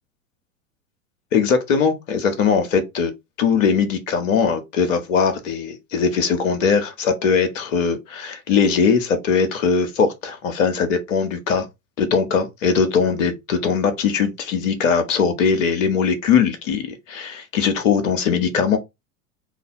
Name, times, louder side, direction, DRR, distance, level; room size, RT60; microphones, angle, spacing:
voice 1, 1.3-3.1 3.4-11.7 12.0-18.8, left 6 dB, 60° left, 1.1 m, -20 dB
3.2 x 2.6 x 4.1 m
figure-of-eight pair, 85°, 42 cm